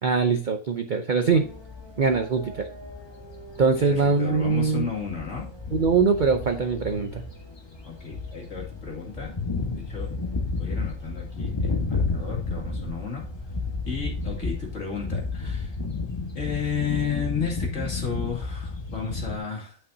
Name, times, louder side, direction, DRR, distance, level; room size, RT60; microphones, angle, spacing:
voice 1, 0.0-1.5 2.0-2.7 3.6-4.9 5.7-7.2, right 5 dB, 50° right, 7 dB, 0.5 m, -22 dB
sound 1, 1.3-19.4, left 3 dB, 20° left, 1.3 m, -32 dB
voice 2, 3.8-5.5 7.8-9.4 9.7-10.1 10.6-13.3 13.9-15.7 16.3-19.8, left 6 dB, 55° left, -2 dB, 2.6 m, -33 dB
9.7 x 5.8 x 2.7 m, 0.42 s
omnidirectional pair, 1.5 m